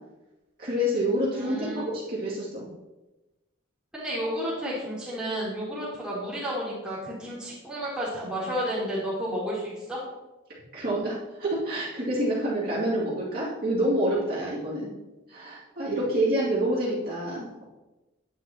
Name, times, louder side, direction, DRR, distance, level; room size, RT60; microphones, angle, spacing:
voice 1, 0.6-1.6 1.9-2.7 10.7-14.9 15.3-17.5, right 1 dB, 45° right, -8 dB, 2.4 m, -27 dB
voice 2, 1.4-1.9 3.9-10.0, equal, 5° right, -8 dB, 3.3 m, -31 dB
9.9 x 9.4 x 2.9 m, 1.1 s
head